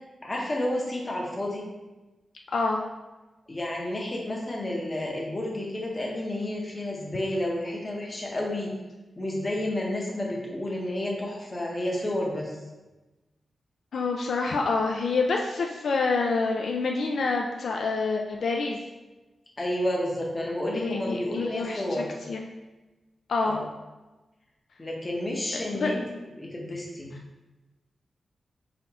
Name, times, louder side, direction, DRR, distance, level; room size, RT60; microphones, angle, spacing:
voice 1, 0.2-1.6 3.5-8.7 9.2-12.5 19.6-22.1 23.4-23.7 24.8-26.0 26.4-27.1, left 1 dB, 25° left, -2 dB, 0.9 m, -30 dB
voice 2, 2.5-2.9 13.9-18.8 20.7-21.8 22.3-22.5 23.3-23.6 25.7-25.9, left 4 dB, 75° left, 1 dB, 0.4 m, -27 dB
4.2 x 2.4 x 4.2 m, 1.1 s
wide cardioid pair, 140°, 0 cm